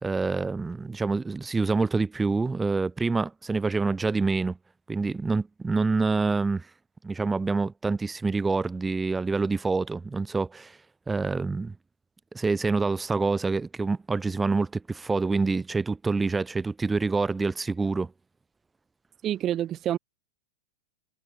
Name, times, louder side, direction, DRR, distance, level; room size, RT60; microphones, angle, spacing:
voice 1, 0.0-4.6 4.9-6.7 7.0-10.8 11.1-11.7 12.3-18.1, right 3 dB, 15° right, 3.1 m, -26 dB
voice 2, 19.2-20.0, right 11 dB, 35° right, 1.7 m, -27 dB
hypercardioid pair, 100°, 0 cm